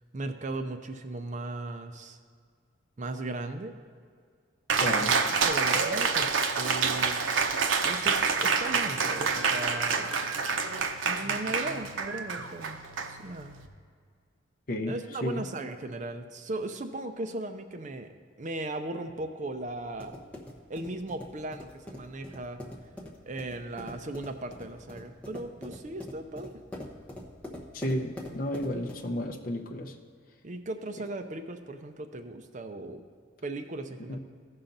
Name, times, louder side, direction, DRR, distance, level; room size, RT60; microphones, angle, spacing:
voice 1, 0.1-2.2 3.0-3.8 4.8-7.2 7.8-10.1 11.0-12.8 13.1-13.6 14.9-18.1 18.4-20.1 20.7-22.6 23.2-26.5 30.4-33.0 33.4-34.2, right 2 dB, 40° right, 7 dB, 0.5 m, -37 dB
Cheering, 4.7-13.6, right 5 dB, 80° right, 0.7 m, -27 dB
voice 2, 4.8-5.1 14.7-14.9 15.2-15.4 27.7-29.9 34.1-34.2, left 1 dB, 45° left, 2 dB, 0.6 m, -32 dB
sound 1, 19.6-29.2, left 1 dB, 5° left, 0.9 m, -44 dB
15.5 x 5.6 x 3.9 m, 2.1 s
head